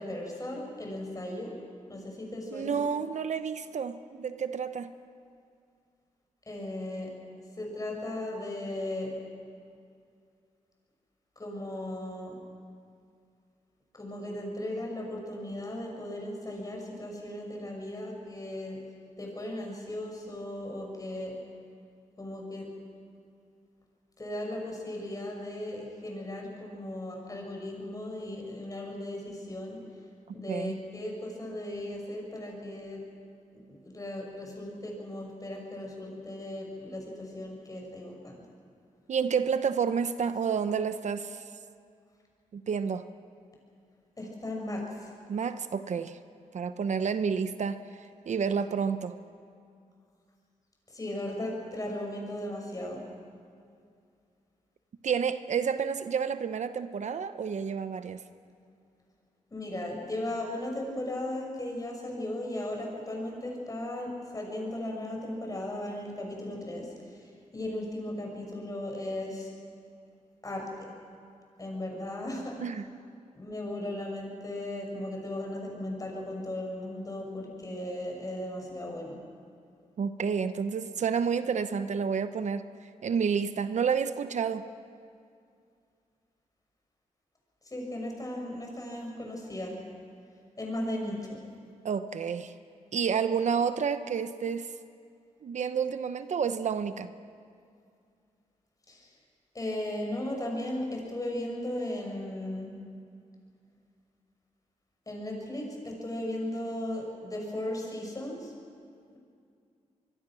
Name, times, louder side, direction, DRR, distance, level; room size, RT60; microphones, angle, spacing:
voice 1, 0.0-1.5 1.9-2.8 6.5-7.1 7.6-9.1 11.4-12.4 13.9-18.8 19.2-21.3 22.2-22.7 24.2-29.8 30.3-33.0 33.7-38.4 44.2-45.1 50.9-53.0 59.5-69.5 70.4-70.9 71.6-72.6 73.3-79.2 87.6-89.8 90.6-91.4 98.9-99.1 99.5-102.7 105.1-108.5, left 1 dB, 30° left, 0 dB, 6.4 m, -36 dB
voice 2, 2.5-4.9 30.5-30.7 39.1-41.4 42.5-43.0 45.3-46.2 46.5-47.8 48.3-49.2 55.0-58.2 72.6-72.8 80.0-82.7 83.0-84.6 91.8-92.5 92.9-94.7 95.4-97.1, right 6 dB, 65° right, 11 dB, 0.9 m, -30 dB
25.0 x 22.0 x 6.3 m, 2.3 s
wide cardioid pair, 100°, 13 cm